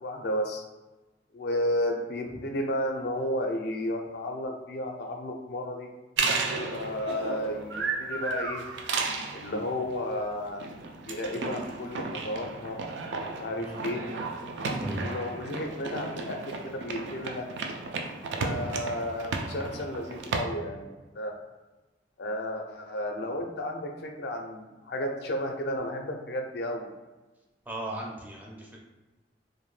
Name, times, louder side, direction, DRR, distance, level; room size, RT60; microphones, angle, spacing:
voice 1, 0.0-0.6 1.3-5.9 6.7-8.6 9.3-10.6 11.1-12.8 13.4-14.1 15.0-17.5 18.4-21.4 22.2-26.9, left 1 dB, 65° left, 3 dB, 0.4 m, -33 dB
sound 1, 6.2-20.4, right 3 dB, 80° right, 0.3 m, -34 dB
voice 2, 27.7-28.8, right 1 dB, 10° right, -2 dB, 0.4 m, -37 dB
2.5 x 2.1 x 3.1 m, 1.2 s
head